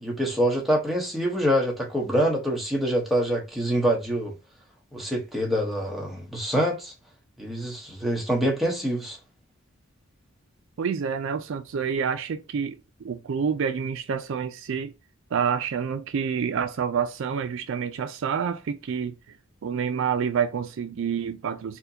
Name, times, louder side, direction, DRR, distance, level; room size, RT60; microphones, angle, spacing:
voice 1, 0.0-4.3 4.9-6.9 7.4-9.2, equal, ahead, 1.0 m, -25 dB
voice 2, 10.8-14.9 15.3-19.1 19.6-21.8, right 7 dB, 65° right, 0.4 m, -28 dB
4.3 x 2.2 x 2.7 m
head